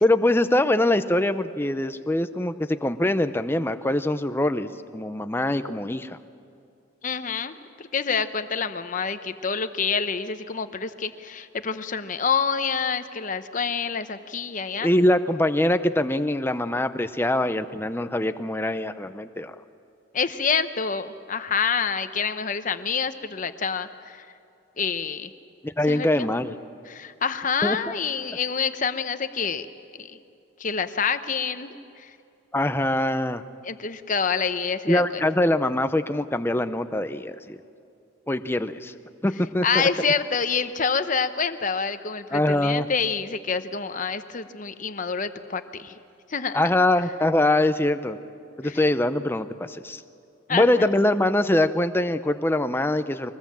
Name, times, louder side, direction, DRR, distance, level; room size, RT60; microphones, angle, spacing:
voice 1, 0.0-6.2 14.8-19.6 25.6-26.6 27.6-27.8 32.5-33.4 34.9-37.6 38.3-39.0 39.2-39.9 42.3-42.9 46.5-48.2 48.6-50.0 50.5-53.3, left 1 dB, 10° left, 10 dB, 0.6 m, -23 dB
voice 2, 7.0-14.9 20.1-24.2 24.8-25.3 25.9-26.3 26.9-29.7 30.0-30.2 30.6-32.1 33.6-35.2 39.6-45.9 46.3-46.7 48.6-48.8 50.5-50.9, left 5 dB, 40° left, 10 dB, 0.8 m, -27 dB
23.5 x 20.0 x 7.5 m, 2.6 s
head